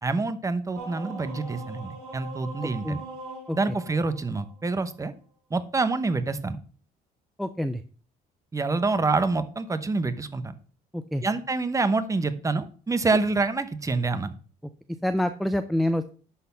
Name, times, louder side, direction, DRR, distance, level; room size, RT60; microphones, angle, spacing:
voice 1, 0.0-3.0 3.6-5.1 5.5-6.6 8.5-10.5 11.2-14.3, right 3 dB, 20° right, 11 dB, 0.9 m, -27 dB
sound 1, 0.7-5.0, right 3 dB, 90° right, 3.2 m, -41 dB
voice 2, 7.4-7.8 10.9-11.2 15.0-16.2, left 1 dB, ahead, 10 dB, 0.4 m, -26 dB
11.0 x 4.2 x 5.6 m, 0.41 s
cardioid pair, 110°, 17 cm